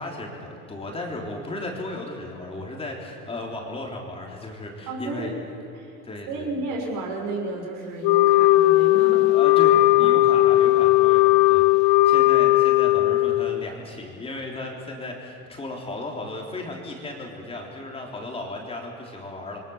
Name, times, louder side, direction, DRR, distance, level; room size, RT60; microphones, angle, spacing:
voice 1, 0.0-5.3 6.0-6.5 9.3-19.6, left 2 dB, 15° left, 0 dB, 3.6 m, -35 dB
voice 2, 4.9-5.3 5.7-6.0 6.3-9.3 10.0-10.2, right 2 dB, 60° right, 1 dB, 6.3 m, -32 dB
Wind instrument woodwind instrument, 8.0-13.7, left 17 dB, 80° left, 0.6 m, -17 dB
28.0 x 22.5 x 7.2 m, 2.6 s
cardioid pair, 145°, 34 cm